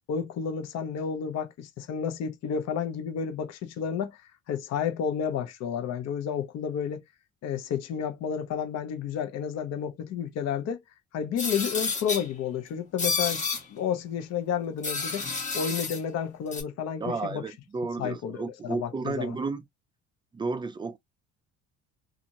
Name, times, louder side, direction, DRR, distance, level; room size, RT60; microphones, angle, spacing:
voice 1, 0.1-4.2 4.5-7.0 7.4-10.8 11.1-13.4 13.7-15.2 15.5-17.4 18.0-19.4, left 7 dB, 60° left, 0.8 m, -31 dB
sound 1, 11.4-12.3 13.0-13.6 14.8-16.0 16.5-16.6, left 4 dB, 25° left, 1.3 m, -30 dB
voice 2, 17.0-19.6 20.3-21.0, right 3 dB, 15° right, 0.4 m, -32 dB
2.9 x 2.5 x 2.5 m
cardioid pair, 130°, 29 cm